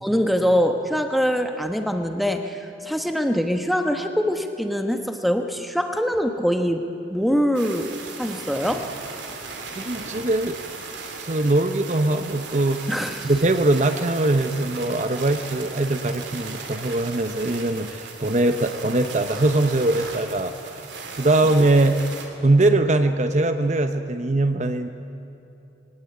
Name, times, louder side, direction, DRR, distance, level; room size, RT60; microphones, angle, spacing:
voice 1, 0.0-8.9 12.9-13.3, equal, ahead, 5 dB, 1.2 m, -23 dB
sound 1, 7.5-22.3, right 4 dB, 75° right, 2.7 m, -37 dB
voice 2, 9.8-10.6 11.2-12.8 13.2-20.9 21.2-22.0 22.4-24.9, right 2 dB, 40° right, 8 dB, 0.8 m, -21 dB
22.0 x 18.0 x 9.3 m, 2.8 s
head